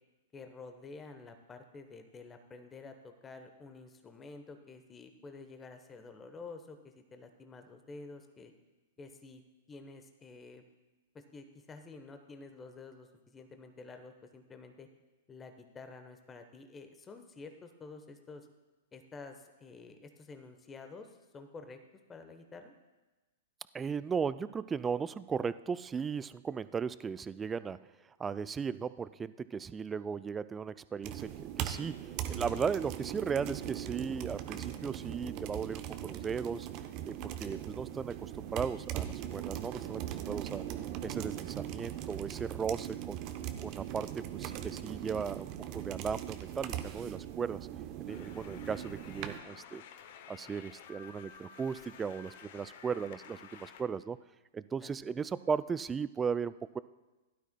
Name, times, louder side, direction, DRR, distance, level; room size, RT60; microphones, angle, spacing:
voice 1, 0.3-8.5 9.0-9.4 9.7-10.6 11.1-14.9 15.3-18.5 18.9-21.8 22.1-22.7 54.8-54.9, left 3 dB, 20° left, 7 dB, 0.9 m, -50 dB
voice 2, 23.7-27.8 28.2-36.7 37.0-40.6 41.0-43.2 43.6-47.6 48.0-49.8 50.3-54.2 54.5-56.8, right 6 dB, 15° right, 16 dB, 0.3 m, -36 dB
sound 1, 31.0-49.4, right 11 dB, 40° right, 0.8 m, -40 dB
sound 2, 48.1-53.8, left 8 dB, 55° left, 0.8 m, -52 dB
16.5 x 12.0 x 2.2 m, 1.1 s
figure-of-eight pair, 105°, 0 cm